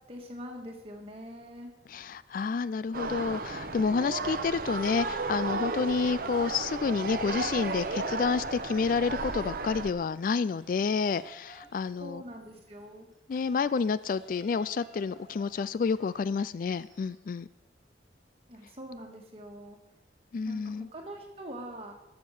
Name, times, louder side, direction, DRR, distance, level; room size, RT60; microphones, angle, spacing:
voice 1, 0.1-1.7 6.2-6.3 12.0-13.1 18.5-19.8 20.5-21.9, equal, 35° right, 2 dB, 1.8 m, -44 dB
voice 2, 1.9-12.2 13.3-17.5 20.3-20.9, left 5 dB, 50° left, 17 dB, 0.3 m, -29 dB
sound 1, 2.9-9.9, right 3 dB, 50° right, 0.8 m, -34 dB
sound 2, 4.7-6.6 6.9-17.2, right 2 dB, ahead, 3.0 m, -56 dB
13.0 x 7.2 x 6.4 m, 0.91 s
head